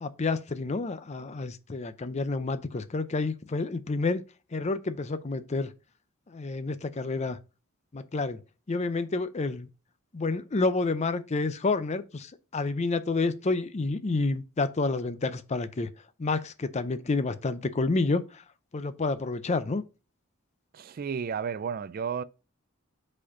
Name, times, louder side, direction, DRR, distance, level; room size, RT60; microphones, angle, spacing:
voice 1, 0.0-4.2 4.5-5.7 6.3-7.4 7.9-8.4 8.7-9.7 10.1-15.9 16.2-18.4 18.7-19.8, left 3 dB, 35° left, 0.5 m, -29 dB
voice 2, 20.7-22.2, right 6 dB, 45° right, 0.3 m, -32 dB
5.0 x 4.3 x 5.2 m
head